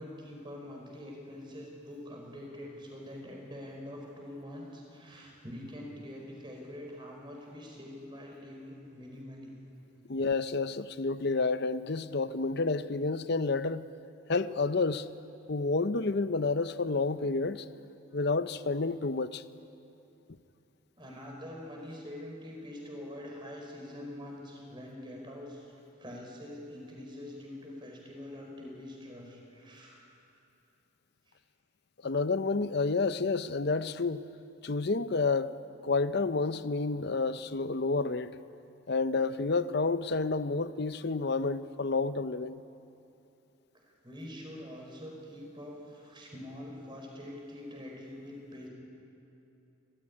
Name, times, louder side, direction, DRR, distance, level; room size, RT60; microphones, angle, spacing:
voice 1, 0.0-9.5 21.0-25.7 26.0-30.1 31.3-31.4 43.7-48.7, left 1 dB, 25° right, 5.0 m, -45 dB
voice 2, 10.1-13.8 14.3-15.1 15.5-17.6 18.1-19.4 32.0-34.2 34.6-35.5 35.8-38.3 38.9-42.6, left 3 dB, 55° left, 0.7 m, -29 dB
25.5 x 15.0 x 9.8 m
head